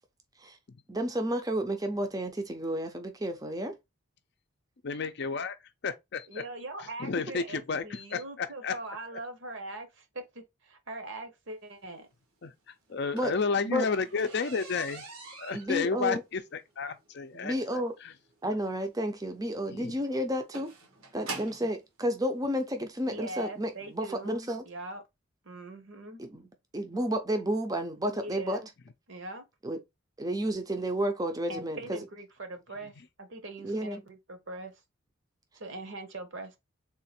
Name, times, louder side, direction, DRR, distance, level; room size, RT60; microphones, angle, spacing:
voice 1, 0.9-3.7 13.1-13.3 13.6-13.9 15.5-16.2 17.3-17.9 18.4-20.7 21.1-24.6 26.2-26.4 26.7-28.6 29.6-29.8 30.2-32.0 33.6-34.0, equal, 15° right, 0.6 m, -31 dB
voice 2, 4.8-5.5 5.8-6.4 7.0-8.7 12.4-12.5 12.9-18.1 19.7-19.9, left 5 dB, 50° left, 0.5 m, -32 dB
voice 3, 6.3-12.1 23.0-25.0 25.4-26.2 28.0-28.7 29.1-29.4 31.5-32.9 33.2-34.8 35.5-36.6, right 2 dB, 60° right, 1.0 m, -42 dB
sound 1, 12.9-21.8 22.7-22.8 23.3-23.5 23.8-23.9 24.3-24.4, right 3 dB, 85° right, 1.4 m, -45 dB
3.7 x 2.5 x 4.2 m
head